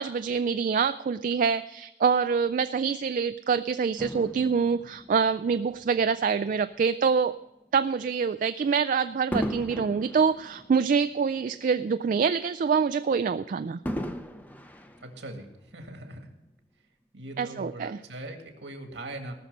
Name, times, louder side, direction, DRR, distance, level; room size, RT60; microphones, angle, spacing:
voice 1, 0.0-7.4 7.7-13.8 17.4-18.0, right 6 dB, 45° right, 11 dB, 0.3 m, -25 dB
Fireworks, 4.0-6.6 7.2-7.4 9.3-11.8 12.2-12.3 13.9-15.7 16.5-16.6, equal, 10° left, 0.6 m, -37 dB
voice 2, 15.0-16.3 17.1-19.3, right 1 dB, 85° right, 4 dB, 2.0 m, -41 dB
18.5 x 6.4 x 5.3 m, 0.95 s
head